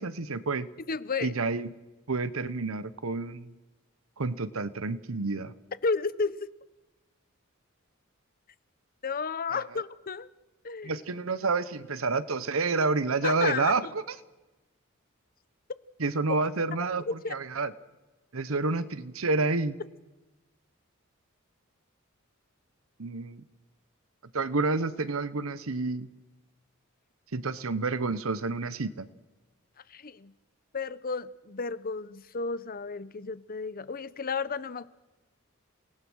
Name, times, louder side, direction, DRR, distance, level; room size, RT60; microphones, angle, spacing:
voice 1, 0.0-0.7 1.2-1.7 2.1-3.5 4.2-5.5 10.8-13.8 16.0-17.0 17.3-17.7 18.3-19.8 23.0-23.4 24.3-26.1 27.3-29.1, right 3 dB, 80° right, 1.0 m, -29 dB
voice 2, 0.9-1.3 5.8-6.5 9.0-10.3 10.6-11.0 13.2-13.9 17.1-17.3 29.9-30.3 30.7-34.9, left 4 dB, 45° left, 0.8 m, -32 dB
29.0 x 18.5 x 6.3 m
head